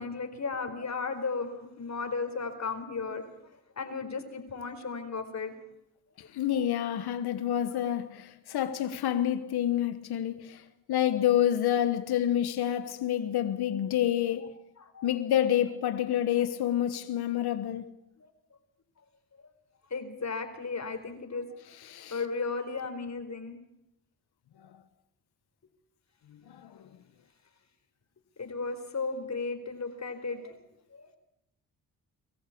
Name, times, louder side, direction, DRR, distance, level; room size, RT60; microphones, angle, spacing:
voice 1, 0.0-3.3 3.8-5.5 14.8-15.1 18.2-18.3 19.4-19.5 19.9-21.6 22.1-23.6 28.4-30.6 30.9-31.1, left 4 dB, 45° left, 4.2 m, -35 dB
voice 2, 6.3-10.6 10.9-14.5 15.0-17.8 21.9-22.2 26.5-26.9, left 11 dB, 85° left, 1.3 m, -28 dB
23.5 x 14.5 x 8.5 m
cardioid pair, 65°, 38 cm